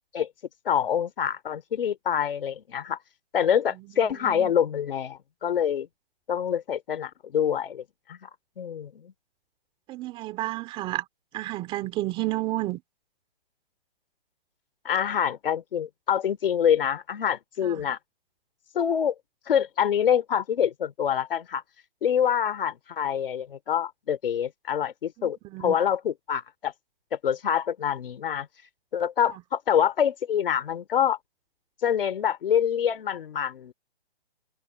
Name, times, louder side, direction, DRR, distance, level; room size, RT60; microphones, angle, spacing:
voice 1, 0.6-3.0 3.3-5.9 6.3-8.3 8.6-9.1 14.8-18.0 18.7-19.1 19.5-21.6 22.0-26.7 27.1-28.5 28.9-31.2 31.8-33.7, left 8 dB, 60° left, 3.0 m, -26 dB
voice 2, 3.7-4.5 9.9-11.0 11.3-12.8 17.6-17.9 25.2-25.8, right 17 dB, 15° right, 2.5 m, -32 dB
hypercardioid pair, 160°, 32 cm